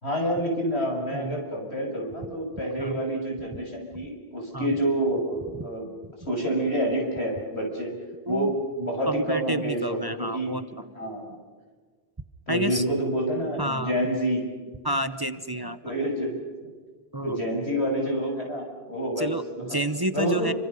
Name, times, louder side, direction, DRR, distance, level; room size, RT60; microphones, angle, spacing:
voice 1, 0.0-5.9 6.3-8.0 8.3-10.5 11.0-11.4 12.5-14.4 15.8-16.4 17.2-19.8 20.1-20.5, right 1 dB, 90° left, 1 dB, 6.9 m, -28 dB
voice 2, 9.1-10.6 11.0-11.2 12.5-12.8 13.6-13.9 14.8-15.8 17.1-17.4 19.2-20.5, right 1 dB, 25° right, 11 dB, 0.9 m, -29 dB
28.5 x 25.0 x 5.5 m, 1.5 s
omnidirectional pair, 1.1 m